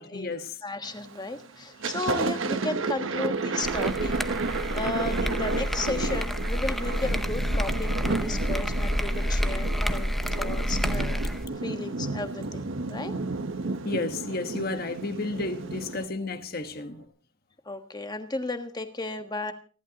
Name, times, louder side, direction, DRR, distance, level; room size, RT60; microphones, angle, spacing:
voice 1, 0.0-0.6 1.8-1.9 5.9-6.2 13.6-17.1, left 2 dB, 50° left, 1.3 m, -33 dB
voice 2, 0.6-4.2 4.5-11.3 11.6-13.1 17.7-19.5, left 2 dB, 20° left, 1.4 m, -34 dB
Thunder, 0.8-1.2 1.6-16.0, right 3 dB, 75° right, 1.1 m, -32 dB
sound 1, 3.6-11.4, equal, ahead, 0.7 m, -29 dB
sound 2, 4.2-17.1, equal, 55° right, 3.3 m, -55 dB
29.5 x 11.5 x 2.9 m
head